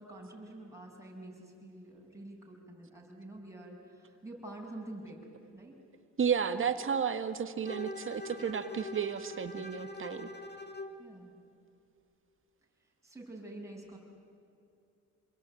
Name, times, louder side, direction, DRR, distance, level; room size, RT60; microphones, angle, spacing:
voice 1, 0.0-5.2 5.5-5.8 11.0-11.3 12.8-14.0, right 1 dB, 10° right, -1 dB, 7.5 m, -47 dB
voice 2, 6.2-10.3, right 7 dB, 45° right, 9 dB, 1.8 m, -32 dB
Bowed string instrument, 7.6-11.0, left 2 dB, 35° left, 2.4 m, -44 dB
28.5 x 21.5 x 9.2 m, 2.6 s
cardioid pair, 90°, 30 cm